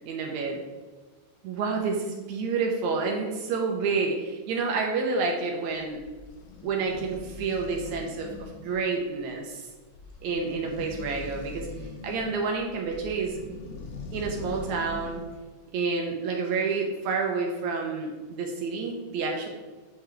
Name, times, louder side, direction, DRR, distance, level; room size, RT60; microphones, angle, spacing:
voice 1, 0.1-0.6 1.4-6.0 6.6-9.6 10.2-11.7 12.0-13.4 14.1-15.2 15.7-19.5, right 4 dB, 75° right, 1 dB, 1.9 m, -29 dB
sound 1, 5.7-15.4, left 4 dB, 80° left, 1.3 m, -42 dB
9.3 x 3.5 x 3.3 m, 1.3 s
omnidirectional pair, 3.7 m